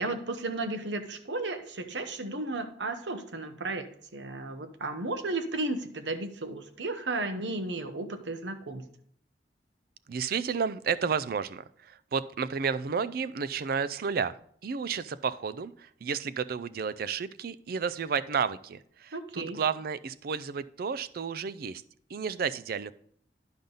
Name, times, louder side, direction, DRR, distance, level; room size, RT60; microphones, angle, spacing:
voice 1, 0.0-8.8 19.1-19.6, right 2 dB, 80° right, 8 dB, 0.9 m, -34 dB
voice 2, 10.1-14.4 14.6-21.8 22.1-22.9, right 6 dB, 55° right, 15 dB, 0.4 m, -32 dB
10.5 x 5.3 x 3.9 m, 0.65 s
head